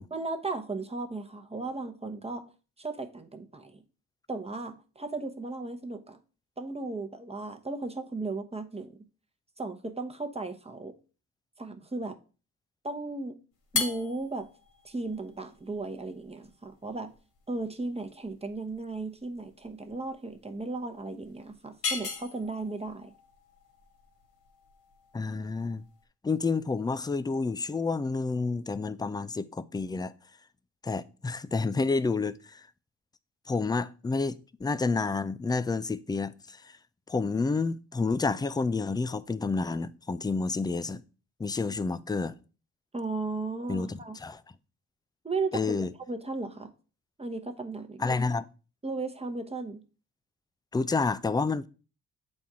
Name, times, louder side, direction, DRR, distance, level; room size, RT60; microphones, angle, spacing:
voice 1, 0.1-2.5 2.8-3.8 4.3-6.2 6.6-9.0 9.6-10.9 11.6-12.2 12.8-13.4 13.7-14.5 14.8-17.1 17.5-23.1 42.9-44.2 45.2-45.8 46.1-46.7 47.2-48.1 48.8-49.8, right 3 dB, 15° right, 1.0 m, -35 dB
sound 1, 13.6-26.0, left 5 dB, 60° left, 1.9 m, -39 dB
voice 2, 25.1-25.8 26.2-30.1 30.8-32.6 33.5-36.6 37.1-41.0 41.4-42.4 43.7-44.4 45.5-45.9 48.0-48.5 50.7-51.7, left 4 dB, 10° left, 0.4 m, -29 dB
7.6 x 4.3 x 3.6 m
supercardioid pair, 65°, 39 cm